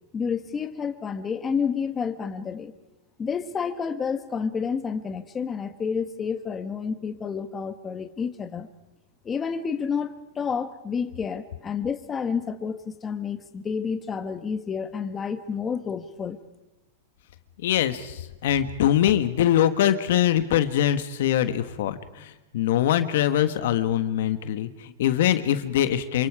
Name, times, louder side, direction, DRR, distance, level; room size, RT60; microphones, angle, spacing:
voice 1, 0.1-2.7 3.2-8.7 9.2-16.4, left 6 dB, 20° left, 9 dB, 1.4 m, -30 dB
voice 2, 17.6-26.3, left 11 dB, 70° left, 11 dB, 1.4 m, -23 dB
28.0 x 24.5 x 4.9 m, 0.98 s
supercardioid pair, 140°, 0 cm